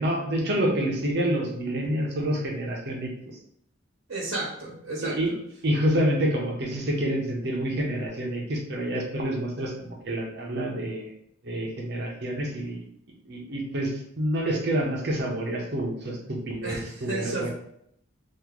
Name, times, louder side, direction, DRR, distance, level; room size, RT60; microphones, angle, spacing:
voice 1, 0.0-3.3 5.0-5.3 5.6-11.1 11.4-12.8 13.2-17.5, right 1 dB, 55° right, -1 dB, 0.9 m, -28 dB
voice 2, 4.1-5.2 16.6-17.5, right 2 dB, 85° right, -5 dB, 1.0 m, -32 dB
3.0 x 2.7 x 3.8 m, 0.71 s
head